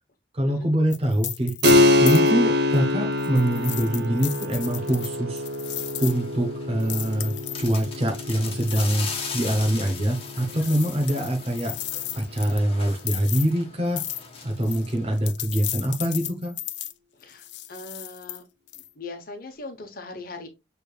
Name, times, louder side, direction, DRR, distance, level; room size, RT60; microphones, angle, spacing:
voice 1, 0.3-1.5 2.0-5.4 6.0-9.1 9.3-11.8 12.1-14.0 14.4-16.6, right 1 dB, 35° right, 0.9 m, -24 dB
sound 1, 0.9-2.3 2.7-2.8 3.2-6.2 6.8-8.0 8.3-12.6 12.9-13.5 14.0-14.3 14.5-16.9 17.3-18.4 18.7-18.9, left 14 dB, 85° left, 0.5 m, -35 dB
Keyboard (musical), 1.6-11.8, left 2 dB, 65° right, 0.7 m, -25 dB
sound 2, 4.5-15.2, left 5 dB, 35° left, 1.3 m, -40 dB
voice 2, 17.2-18.4 19.0-20.5, left 3 dB, 55° left, 1.0 m, -40 dB
6.6 x 3.4 x 2.4 m
head